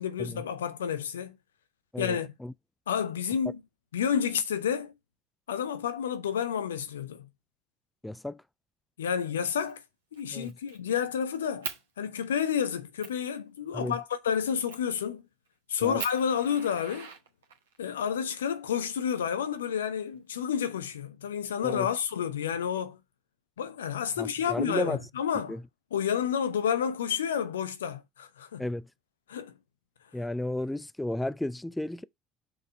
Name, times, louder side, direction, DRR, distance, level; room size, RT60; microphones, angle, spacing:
voice 1, 0.0-1.3 2.0-2.3 2.9-3.6 3.9-4.9 5.5-7.3 9.0-9.8 10.1-11.7 12.0-15.2 15.7-17.1 17.8-23.0 23.6-25.6 25.9-28.7 29.3-29.5, left 8 dB, 75° left, 0.7 m, -30 dB
voice 2, 1.9-2.5 8.0-8.4 10.3-10.5 13.7-14.0 15.8-16.0 21.6-21.9 24.2-25.0 25.5-25.6 28.6-28.9 30.1-32.0, left 1 dB, 5° left, 0.4 m, -33 dB
Fire, 9.5-9.7 10.1-11.0 11.6-11.8 12.4-12.5 13.0-13.2 14.7-15.0 15.5-15.6 16.0-17.8 18.8-19.8, right 6 dB, 75° right, 1.1 m, -41 dB
5.9 x 3.6 x 5.4 m
figure-of-eight pair, 60°, 0 cm